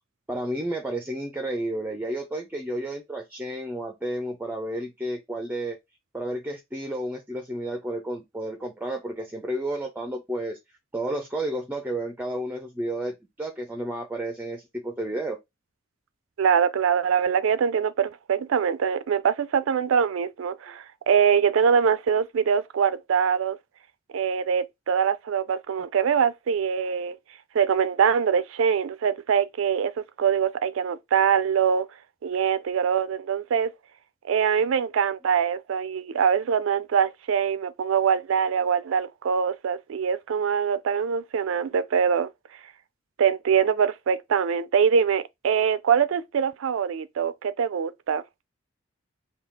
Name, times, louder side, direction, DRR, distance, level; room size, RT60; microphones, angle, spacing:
voice 1, 0.3-5.8 6.1-10.6 10.9-15.4, right 1 dB, 10° right, 0.5 m, -31 dB
voice 2, 16.4-23.6 24.1-27.2 27.5-29.9 30.2-31.9 32.2-33.7 34.3-42.3 43.2-48.2, right 7 dB, 90° right, 0.4 m, -23 dB
3.7 x 2.3 x 3.4 m
head